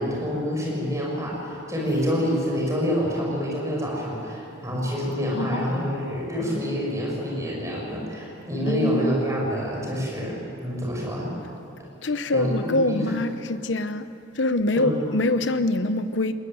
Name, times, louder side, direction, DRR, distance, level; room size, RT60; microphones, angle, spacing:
voice 1, 0.0-11.4 12.3-13.1 14.8-15.0, equal, 15° right, -3 dB, 6.7 m, -27 dB
voice 2, 5.4-5.8 8.7-9.1 12.0-14.1 14.4-16.3, left 2 dB, 65° left, 10 dB, 0.9 m, -24 dB
20.5 x 19.5 x 9.6 m, 2.7 s
head